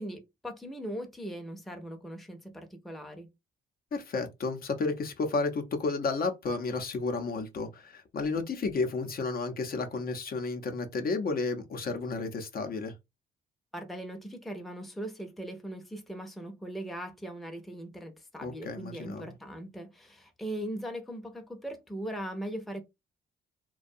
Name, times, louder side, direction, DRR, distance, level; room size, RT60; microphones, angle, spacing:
voice 1, 0.0-3.3 13.7-22.8, right 1 dB, ahead, 0.6 m, -39 dB
voice 2, 3.9-12.9 18.4-19.3, left 3 dB, 50° left, 0.7 m, -32 dB
2.5 x 2.2 x 2.6 m
cardioid pair, 90°, 20 cm